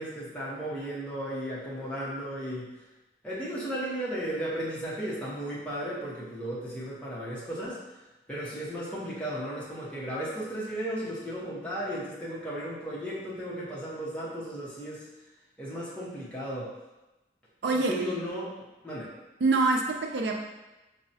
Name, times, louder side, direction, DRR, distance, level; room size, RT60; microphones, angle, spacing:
voice 1, 0.0-2.8 3.2-7.8 8.3-15.1 15.6-16.7 17.7-18.6 18.8-19.1, right 1 dB, 5° left, -8 dB, 0.6 m, -35 dB
voice 2, 17.6-17.9 19.4-20.3, right 3 dB, 70° right, 2 dB, 0.4 m, -25 dB
4.5 x 2.0 x 2.7 m, 1.1 s
head